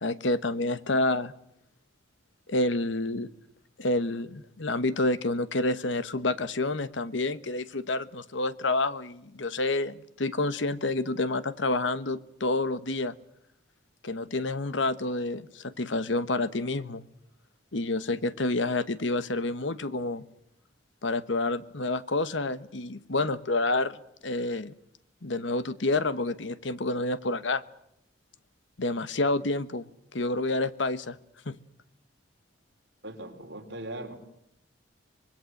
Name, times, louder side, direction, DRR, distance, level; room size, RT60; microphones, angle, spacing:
voice 1, 0.0-1.3 2.5-3.3 3.8-13.1 14.0-17.0 17.7-20.2 21.0-24.0 24.2-24.7 25.2-27.6 28.8-29.8 30.1-31.2 31.4-31.6, left 2 dB, 70° left, 15 dB, 1.1 m, -28 dB
voice 2, 33.0-34.1, right 1 dB, 60° right, 4 dB, 3.8 m, -39 dB
25.5 x 20.5 x 7.9 m, 0.77 s
head